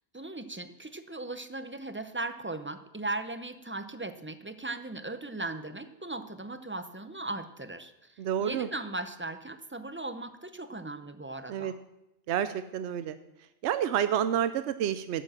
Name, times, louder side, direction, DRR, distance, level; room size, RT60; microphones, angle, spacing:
voice 1, 0.1-11.8, right 2 dB, 15° right, 10 dB, 0.5 m, -38 dB
voice 2, 8.2-8.7 11.5-11.7 12.3-13.2 13.6-15.2, right 9 dB, 80° right, 12 dB, 0.9 m, -29 dB
12.0 x 7.5 x 7.5 m, 0.91 s
omnidirectional pair, 1.2 m